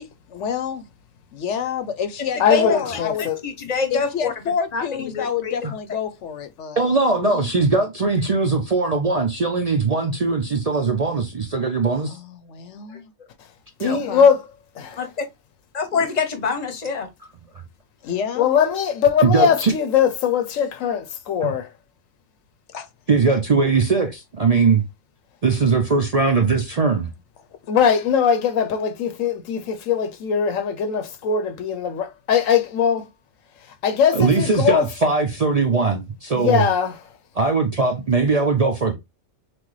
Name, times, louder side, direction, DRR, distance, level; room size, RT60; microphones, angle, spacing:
voice 1, 0.3-0.9 1.3-3.3 3.9-6.8 7.2-7.5 11.9-13.0 13.9-14.3 15.9-16.1 18.0-18.5 22.7-22.9, left 7 dB, 70° left, 1.0 m, -28 dB
voice 2, 2.4-3.4 13.8-14.5 18.4-21.7 27.7-33.1 33.8-34.9 36.3-37.0, left 7 dB, 90° left, 1.1 m, -20 dB
voice 3, 3.4-4.3 4.7-5.6 14.0-14.1 15.0-15.1 15.7-17.1, left 5 dB, 35° left, 0.9 m, -25 dB
voice 4, 6.8-12.2 13.8-14.0 19.2-19.7 21.4-21.5 23.1-24.8 25.4-27.1 34.1-36.6 37.4-38.9, right 4 dB, 45° right, 0.5 m, -20 dB
5.9 x 2.2 x 3.1 m
omnidirectional pair, 1.3 m